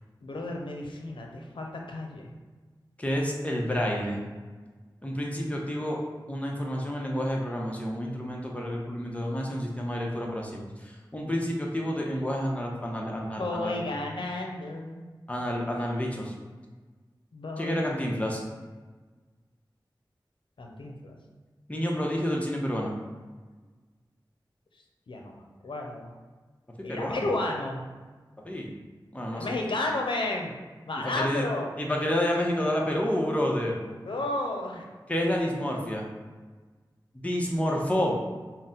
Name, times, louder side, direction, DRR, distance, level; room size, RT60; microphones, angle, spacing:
voice 1, 0.2-2.3 13.4-15.1 17.3-17.8 20.6-21.2 25.1-26.1 26.8-27.9 29.3-30.5 30.9-31.7 34.0-34.8, left 2 dB, 85° left, 1 dB, 0.6 m, -32 dB
voice 2, 3.0-4.2 5.0-6.0 6.3-13.8 15.3-16.3 17.6-18.4 21.7-22.9 26.8-27.3 28.4-28.7 29.1-29.5 31.0-31.4 31.8-33.8 35.1-36.1 37.1-38.1, equal, 15° left, -1 dB, 0.8 m, -29 dB
4.0 x 2.1 x 3.8 m, 1.3 s
wide cardioid pair, 45°, 8 cm